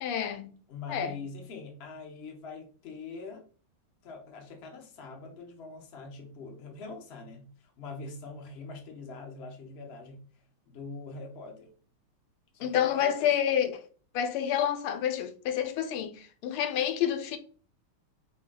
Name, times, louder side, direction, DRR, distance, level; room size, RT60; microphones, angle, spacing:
voice 1, 0.0-0.6 0.9-1.2 12.6-13.8 14.1-17.4, left 9 dB, 80° left, 1.5 m, -29 dB
voice 2, 0.7-3.4 4.0-10.2 10.7-11.7 12.5-13.3, left 4 dB, 50° left, 0.7 m, -43 dB
5.0 x 2.3 x 3.7 m
omnidirectional pair, 2.4 m